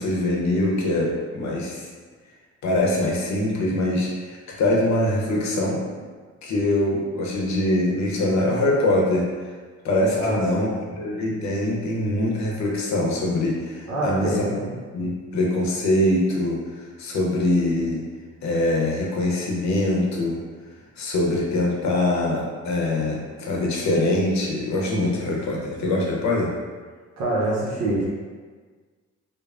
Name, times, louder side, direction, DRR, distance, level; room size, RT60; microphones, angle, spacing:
voice 1, 0.0-1.9 2.6-5.8 6.4-9.3 9.8-10.7 11.0-14.4 14.9-16.6 17.0-18.0 18.4-20.4 21.0-26.5, left 1 dB, 65° left, -2 dB, 0.7 m, -23 dB
voice 2, 10.1-11.0 13.9-14.7 27.2-28.1, right 1 dB, 65° right, -5 dB, 0.7 m, -25 dB
3.2 x 2.0 x 2.4 m, 1.5 s
cardioid pair, 90°, 30 cm